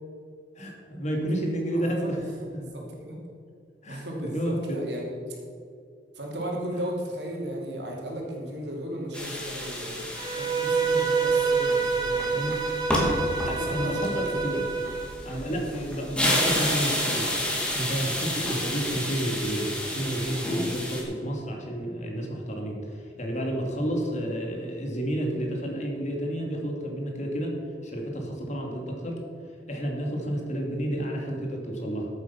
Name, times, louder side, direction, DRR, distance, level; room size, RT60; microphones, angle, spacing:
voice 1, 0.6-2.6 3.8-4.8 12.3-12.6 13.4-14.6 15.2-29.2 29.7-32.1, right 1 dB, 45° left, 1 dB, 2.5 m, -31 dB
voice 2, 1.7-2.1 2.4-3.2 3.9-5.4 6.1-10.0 10.3-12.7 13.4-14.7 15.4-15.9, equal, 75° right, -1 dB, 3.0 m, -36 dB
sound 1, 9.1-21.0, left 1 dB, 5° left, 2.6 m, -30 dB
Bowed string instrument, 10.2-15.1, right 4 dB, 25° right, 1.1 m, -27 dB
14.0 x 8.7 x 5.8 m, 2.4 s
head